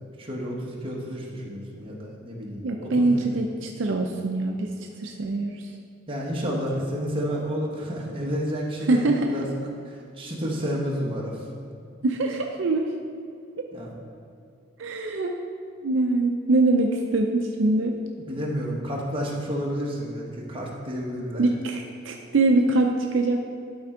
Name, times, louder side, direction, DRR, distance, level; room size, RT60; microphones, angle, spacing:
voice 1, 0.2-3.2 6.1-9.0 9.3-9.5 9.8-11.5 13.7-13.9 18.2-21.4, equal, 25° right, -3 dB, 1.2 m, -30 dB
voice 2, 2.6-4.7 5.0-5.6 8.9-9.5 12.0-12.9 13.6-13.7 14.8-15.3 15.8-17.9 21.4-23.4, right 2 dB, 65° right, 2 dB, 0.5 m, -23 dB
12.0 x 4.4 x 3.8 m, 2.4 s
head